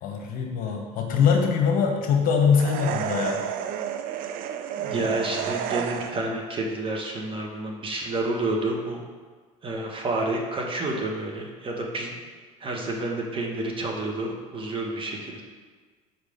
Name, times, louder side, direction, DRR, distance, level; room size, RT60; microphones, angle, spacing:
voice 1, 0.0-3.4 5.0-5.3, left 6 dB, 55° left, 2 dB, 1.1 m, -23 dB
sound 1, 2.5-6.4, right 9 dB, 55° right, 0.5 m, -31 dB
voice 2, 4.8-9.0 9.6-12.2 12.6-15.4, right 2 dB, 30° right, 0 dB, 1.3 m, -29 dB
5.0 x 4.5 x 5.0 m, 1.5 s
hypercardioid pair, 80°, 17 cm